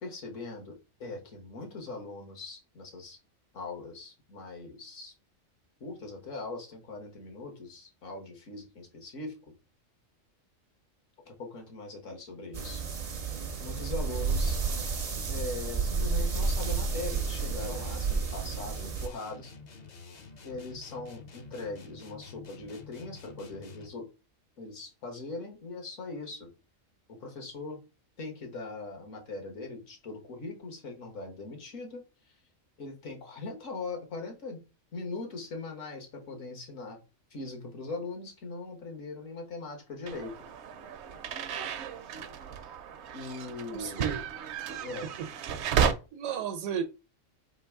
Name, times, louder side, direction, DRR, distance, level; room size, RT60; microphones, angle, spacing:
voice 1, 0.0-3.2 3.5-5.1 5.8-9.4 11.2-12.8 13.6-14.6 15.3-19.5 20.4-24.1 24.6-26.5 27.1-27.8 28.2-32.0 32.8-34.6 34.9-37.0 37.3-40.3 43.1-44.1 44.8-45.1, left 3 dB, 70° left, 1.6 m, -40 dB
sound 1, 12.5-19.1, right 4 dB, 45° right, 0.5 m, -31 dB
sound 2, 16.4-24.1, left 4 dB, 45° left, 0.6 m, -49 dB
sound 3, 40.1-45.9, right 7 dB, 65° right, 0.8 m, -33 dB
voice 2, 43.7-44.2 45.2-45.3 46.1-46.8, right 8 dB, 80° right, 1.1 m, -33 dB
3.8 x 2.9 x 4.6 m
omnidirectional pair, 1.4 m